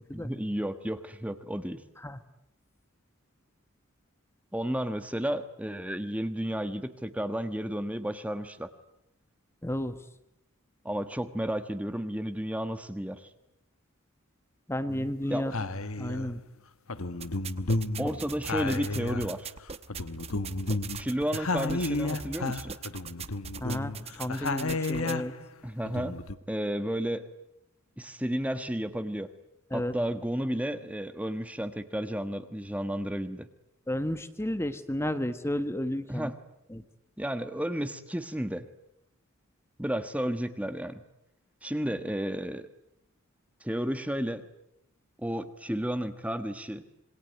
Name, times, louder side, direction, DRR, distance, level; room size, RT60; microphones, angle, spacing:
voice 1, 0.1-1.8 4.5-8.7 10.8-13.3 15.3-15.5 18.0-19.5 20.9-22.8 25.6-26.1 26.5-27.3 28.0-29.3 29.7-33.5 36.1-36.4 37.2-38.6 39.8-41.0 41.6-42.7 43.6-44.5 45.2-46.8, equal, 5° right, 10 dB, 1.3 m, -32 dB
voice 2, 9.6-10.0 14.7-15.5 16.0-16.4 23.6-25.3 29.7-29.9 33.9-36.3 36.7-36.8, left 1 dB, 10° left, 10 dB, 1.3 m, -32 dB
sound 1, 14.9-15.1 15.5-16.4 16.9-19.6 19.9-25.5 25.9-26.4, left 2 dB, 75° left, 1.4 m, -32 dB
sound 2, 17.2-25.2, right 5 dB, 30° right, 1.0 m, -42 dB
27.0 x 22.5 x 9.5 m, 0.80 s
head